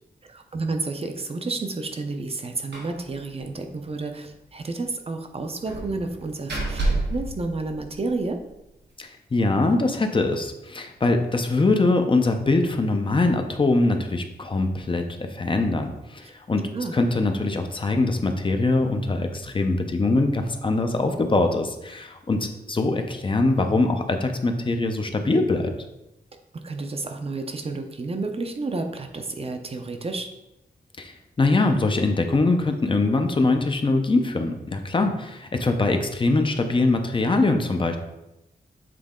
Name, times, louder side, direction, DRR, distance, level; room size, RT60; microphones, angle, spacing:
voice 1, 0.2-8.4 16.2-16.3 16.7-17.0 26.5-30.3, right 3 dB, 35° right, 5 dB, 0.6 m, -31 dB
Slam, 2.7-3.0 3.3-3.4 3.8-3.9 5.7-8.3, right 2 dB, 90° right, 1.4 m, -29 dB
voice 2, 9.0-16.6 16.9-25.7 31.0-38.0, left 2 dB, 30° left, 5 dB, 0.6 m, -23 dB
7.6 x 3.9 x 3.7 m, 0.93 s
wide cardioid pair, 140°, 17 cm